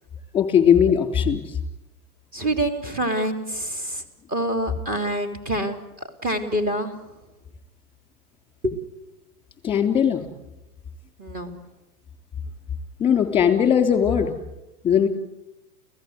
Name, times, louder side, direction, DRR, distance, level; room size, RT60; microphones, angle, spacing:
voice 1, 0.3-1.5 9.6-10.2 13.0-14.3 14.8-15.1, left 8 dB, 10° left, 6 dB, 3.3 m, -19 dB
voice 2, 2.3-4.0 4.3-5.8 6.2-7.0 8.6-8.8 11.2-11.5, right 1 dB, 20° right, 6 dB, 3.2 m, -26 dB
29.5 x 16.5 x 8.0 m, 0.98 s
hypercardioid pair, 140°, 44 cm